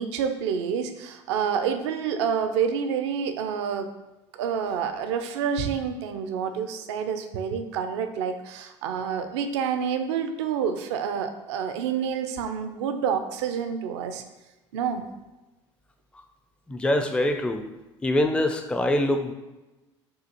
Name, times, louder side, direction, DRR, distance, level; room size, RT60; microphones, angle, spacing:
voice 1, 0.0-3.9 4.4-14.2 14.7-15.0, right 7 dB, 70° right, 7 dB, 0.4 m, -28 dB
voice 2, 16.7-17.6 18.0-19.3, left 1 dB, 5° left, 6 dB, 0.4 m, -24 dB
6.2 x 2.4 x 2.9 m, 1.0 s
figure-of-eight pair, 65°, 15 cm